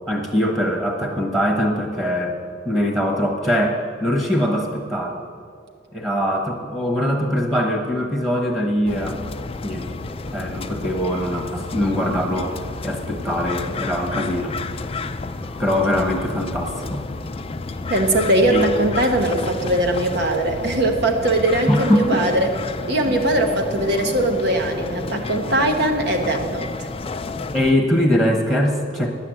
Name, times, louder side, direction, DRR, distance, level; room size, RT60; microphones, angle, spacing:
voice 1, 0.1-2.4 2.6-5.2 5.9-9.2 9.6-10.0 10.3-14.6 14.8-15.0 15.6-17.0 18.5-18.7 21.7-22.2 23.1-23.2 27.5-29.1, equal, 15° right, 2 dB, 1.2 m, -22 dB
sound 1, 8.9-27.7, left 3 dB, 30° left, 0.4 m, -31 dB
voice 2, 17.9-22.5 22.9-26.7, right 1 dB, 60° right, 4 dB, 1.0 m, -20 dB
10.5 x 8.7 x 7.7 m, 2.3 s
head